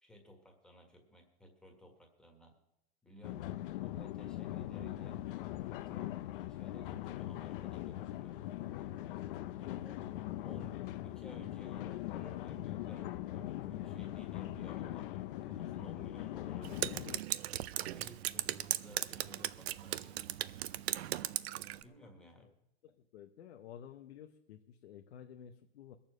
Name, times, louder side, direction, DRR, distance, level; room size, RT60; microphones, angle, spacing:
voice 1, 0.0-2.5 3.0-3.4 3.8-5.2 5.9-8.4 9.6-10.0 10.4-17.3 17.7-20.2 21.8-22.5, equal, ahead, 2 dB, 1.8 m, -56 dB
sound 1, 3.2-17.2, left 14 dB, 60° left, 0.7 m, -41 dB
Drip, 16.6-21.8, right 14 dB, 75° right, 0.7 m, -38 dB
voice 2, 22.8-26.0, left 9 dB, 80° left, 6 dB, 1.0 m, -53 dB
21.5 x 7.3 x 6.3 m, 0.87 s
supercardioid pair, 160°, 32 cm